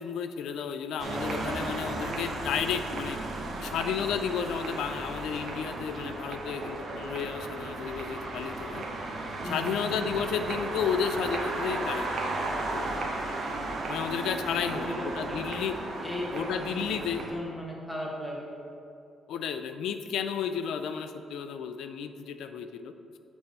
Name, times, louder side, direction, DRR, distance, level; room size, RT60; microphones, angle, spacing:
voice 1, 0.0-3.2 3.6-8.8 9.4-12.1 12.7-13.1 13.9-15.7 16.3-17.2 19.3-22.9, left 7 dB, 80° left, 9 dB, 0.3 m, -32 dB
sound 1, 1.0-17.3, right 2 dB, 55° right, 0.9 m, -35 dB
voice 2, 9.4-10.0 14.5-15.4 16.0-18.5, equal, 10° left, -3 dB, 1.3 m, -38 dB
6.0 x 3.4 x 5.3 m, 2.6 s
cardioid pair, 90°, 0 cm